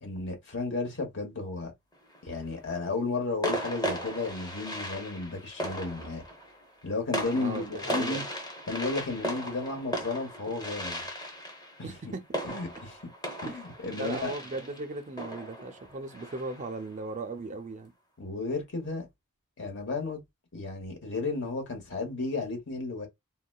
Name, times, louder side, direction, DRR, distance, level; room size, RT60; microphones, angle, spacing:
voice 1, 0.0-1.7 2.2-6.2 6.8-8.2 8.7-11.0 12.4-13.0 13.4-14.3 18.2-19.1 19.6-20.2 20.5-23.1, left 3 dB, 55° left, 1.1 m, -33 dB
sound 1, 1.9-2.5 3.4-16.8, equal, 20° left, 0.7 m, -37 dB
voice 2, 7.3-8.3 11.8-12.4 13.5-13.6 13.9-17.9, right 3 dB, 35° right, 0.4 m, -37 dB
3.8 x 2.1 x 2.2 m
head